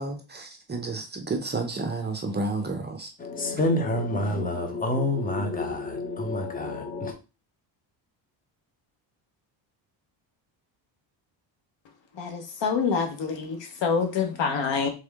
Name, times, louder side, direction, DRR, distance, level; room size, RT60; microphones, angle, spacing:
voice 1, 0.0-3.1, right 3 dB, 20° right, 0.6 m, -31 dB
voice 2, 3.2-7.1, left 2 dB, 20° left, 0.8 m, -27 dB
voice 3, 12.2-14.9, left 5 dB, 70° left, 1.2 m, -26 dB
3.6 x 3.3 x 3.5 m
cardioid pair, 120°, 46 cm